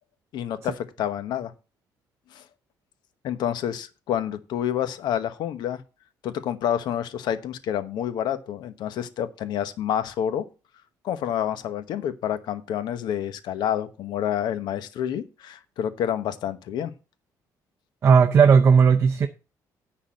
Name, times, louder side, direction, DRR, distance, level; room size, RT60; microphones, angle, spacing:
voice 1, 0.3-1.5 2.3-2.4 3.2-5.8 6.2-10.5 11.0-16.9, left 10 dB, 70° left, 1.0 m, -28 dB
voice 2, 18.0-19.3, right 6 dB, 35° right, 0.7 m, -15 dB
10.0 x 4.0 x 7.6 m
cardioid pair, 150°, 8 cm